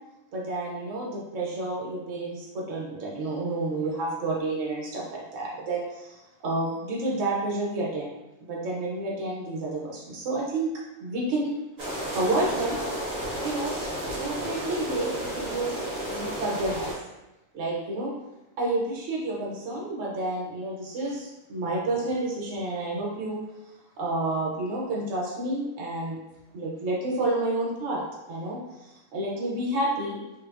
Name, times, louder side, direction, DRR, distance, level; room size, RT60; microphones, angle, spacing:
voice 1, 0.3-8.1 8.4-11.5 12.1-12.8 13.4-13.7 14.2-17.0 17.5-18.1 18.6-23.4 24.0-26.2 26.5-28.0 28.3-30.2, right 2 dB, 70° right, -3 dB, 1.0 m, -30 dB
sound 1, 11.8-16.9, right 1 dB, 40° right, 0.8 m, -32 dB
3.1 x 2.1 x 2.3 m, 0.98 s
omnidirectional pair, 1.4 m